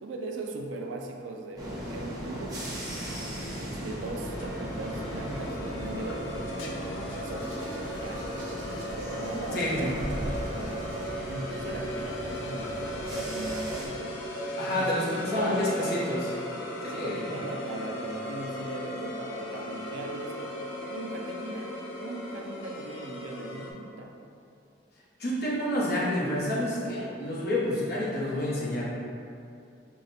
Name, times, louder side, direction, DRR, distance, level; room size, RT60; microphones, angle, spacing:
voice 1, 0.0-2.6 3.6-7.6 7.8-8.2 9.0-14.2 14.6-16.0 16.9-24.1, right 2 dB, 85° right, 2 dB, 0.4 m, -39 dB
sound 1, 1.6-13.9, equal, 20° right, 0.7 m, -38 dB
sound 2, 4.2-23.7, equal, 90° left, 0.5 m, -37 dB
Hands, 7.2-11.1 12.1-12.4, equal, 40° right, 1.2 m, -42 dB
voice 2, 9.5-10.1 14.6-16.3 16.8-17.3 25.2-28.8, left 1 dB, 55° left, -6 dB, 0.8 m, -29 dB
3.8 x 2.1 x 4.0 m, 2.6 s
head